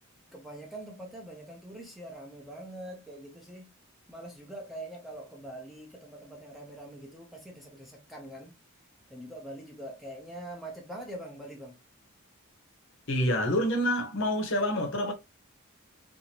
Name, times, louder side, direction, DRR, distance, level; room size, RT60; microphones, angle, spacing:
voice 1, 0.3-3.7 4.1-8.6 9.1-11.8, right 1 dB, ahead, 0.6 m, -43 dB
voice 2, 13.1-15.1, equal, 60° left, 0.8 m, -27 dB
2.8 x 2.5 x 2.8 m
head